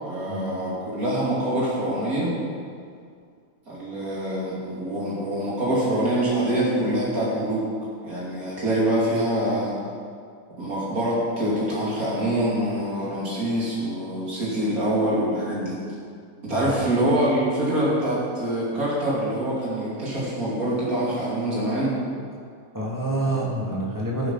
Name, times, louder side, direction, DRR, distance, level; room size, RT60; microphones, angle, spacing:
voice 1, 0.0-2.3 3.7-7.7 8.0-9.8 10.6-15.8 16.4-21.9 23.2-23.4, right 1 dB, 85° right, -7 dB, 3.3 m, -25 dB
voice 2, 16.5-16.8 22.7-24.3, right 1 dB, 15° right, -4 dB, 2.6 m, -27 dB
17.5 x 7.2 x 5.7 m, 2.2 s
omnidirectional pair, 1.5 m